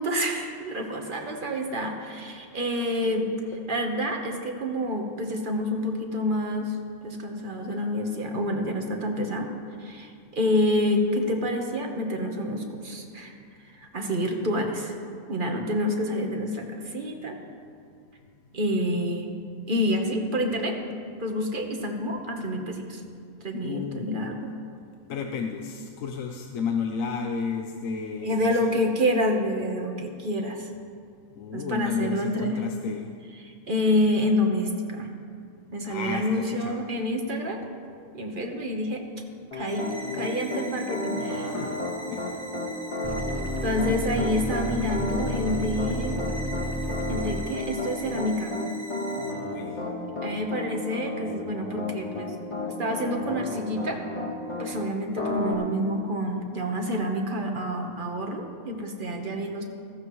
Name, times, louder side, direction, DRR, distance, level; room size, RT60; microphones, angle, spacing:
voice 1, 0.0-3.3 3.7-6.8 7.0-9.5 9.8-13.3 13.8-15.0 15.3-17.4 18.5-19.3 19.7-20.8 21.2-23.0 23.4-24.4 28.2-30.7 31.5-32.6 33.7-35.1 35.7-37.6 38.1-39.0 39.5-41.5 43.6-46.2 47.1-48.6 50.2-52.3 52.7-54.0 54.6-59.6, equal, 40° right, 2 dB, 1.3 m, -28 dB
voice 2, 23.6-24.1 25.1-28.9 31.4-33.1 35.8-36.8 41.4-41.8 42.1-42.2 43.9-44.0 49.4-49.7, left 6 dB, 70° left, 3 dB, 1.1 m, -32 dB
Piano, 39.5-54.7 55.2-55.5, left 2 dB, 20° left, 1.4 m, -32 dB
sound 1, 39.7-49.3, right 1 dB, 65° right, 2.0 m, -42 dB
sound 2, 43.0-47.4, equal, 20° right, 0.4 m, -32 dB
15.0 x 15.0 x 3.1 m, 2.3 s
omnidirectional pair, 1.5 m